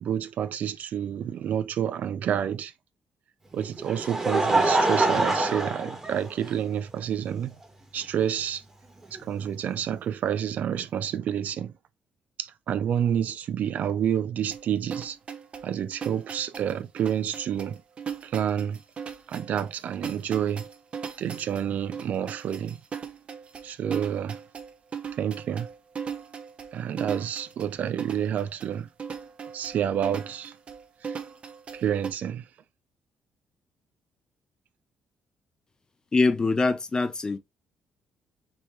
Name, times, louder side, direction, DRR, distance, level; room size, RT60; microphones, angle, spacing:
voice 1, 0.0-2.7 3.5-7.6 7.9-8.6 9.1-11.7 12.4-15.2 15.6-17.8 18.2-18.8 19.3-20.7 21.2-22.8 23.6-24.4 25.2-25.7 26.7-28.9 29.5-30.6 31.0-31.2 31.7-32.4, right 9 dB, 60° right, 0.4 m, -29 dB
Laughter, 3.6-6.8 7.6-7.7 9.2-9.3, right 2 dB, 15° right, 1.5 m, -25 dB
sound 1, 14.5-32.1, right 6 dB, 40° right, 0.8 m, -38 dB
voice 2, 36.1-37.4, left 3 dB, 25° left, 0.7 m, -23 dB
5.3 x 3.0 x 3.1 m
cardioid pair, 120°, 3 cm